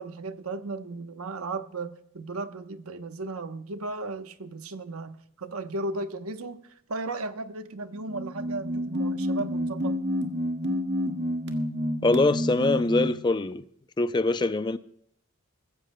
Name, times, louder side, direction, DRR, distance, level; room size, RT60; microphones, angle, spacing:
voice 1, 0.0-6.6 6.9-10.0, right 2 dB, 90° right, 1.0 m, -35 dB
sound 1, 8.0-13.2, equal, 55° right, 1.7 m, -29 dB
voice 2, 12.0-13.6 14.0-14.8, left 2 dB, 20° left, 0.4 m, -23 dB
22.5 x 15.5 x 2.2 m
head